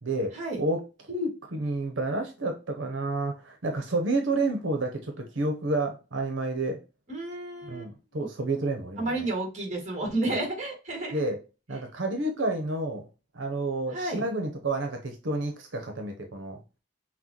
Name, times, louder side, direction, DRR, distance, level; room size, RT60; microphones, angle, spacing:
voice 1, 0.0-0.8 1.1-6.8 7.6-9.3 10.2-10.4 11.1-11.4 11.7-13.1 13.3-16.6, right 2 dB, 85° right, 4 dB, 0.9 m, -30 dB
voice 2, 7.1-7.9 9.0-11.2 13.9-14.2, right 2 dB, 40° right, 2 dB, 1.6 m, -31 dB
6.0 x 2.2 x 3.0 m, 0.30 s
head